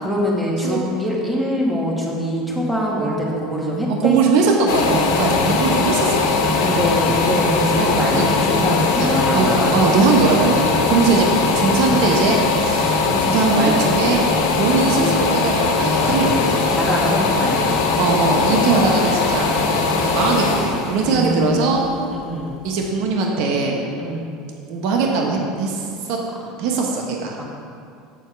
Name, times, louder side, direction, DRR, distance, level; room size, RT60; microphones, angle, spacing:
voice 1, 0.0-4.2 6.6-9.8 16.1-17.9 21.0-22.6 24.0-24.3 27.4-27.5, equal, 5° right, -4 dB, 2.1 m, -24 dB
voice 2, 3.9-6.5 7.8-7.9 8.1-8.3 9.3-14.2 14.5-16.5 18.0-19.5 20.0-21.8 22.6-23.8 24.7-26.2 26.6-27.3, right 4 dB, 65° right, 0 dB, 1.2 m, -20 dB
sound 1, 4.7-22.3 22.8-22.9, left 4 dB, 80° left, 1.2 m, -20 dB
9.1 x 4.4 x 6.9 m, 2.4 s
supercardioid pair, 115°, 0 cm